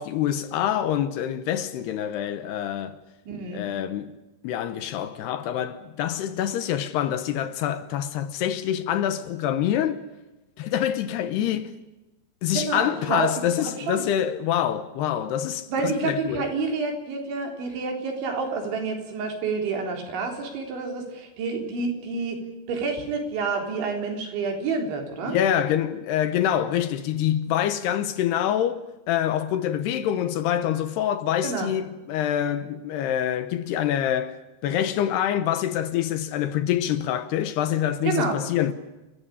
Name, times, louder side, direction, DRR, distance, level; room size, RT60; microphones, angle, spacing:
voice 1, 0.0-3.0 3.5-4.1 4.4-10.0 10.6-11.7 12.4-16.4 25.2-34.4 34.6-38.7, left 10 dB, 75° left, 2.8 m, -26 dB
voice 2, 3.3-3.7 12.5-13.3 13.6-14.0 15.7-22.4 22.7-25.4 31.4-31.7 38.0-38.4, right 4 dB, 80° right, 6.1 m, -28 dB
29.5 x 14.5 x 9.9 m
omnidirectional pair, 5.3 m